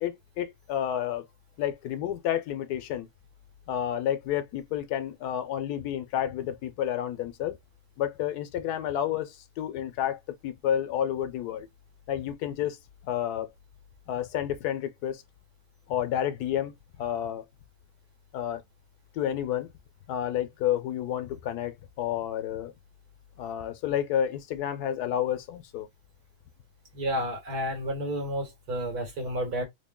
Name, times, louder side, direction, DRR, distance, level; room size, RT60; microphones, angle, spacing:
voice 1, 0.0-1.2 1.6-3.1 3.7-7.6 8.0-11.7 12.1-12.8 13.0-13.5 14.1-15.2 15.9-16.7 17.0-17.4 18.3-18.6 19.1-19.7 20.1-22.7 23.4-25.9, left 10 dB, 85° left, 1.2 m, -30 dB
voice 2, 26.9-29.6, equal, 75° right, 1.8 m, -31 dB
3.5 x 2.2 x 3.6 m
omnidirectional pair, 1.6 m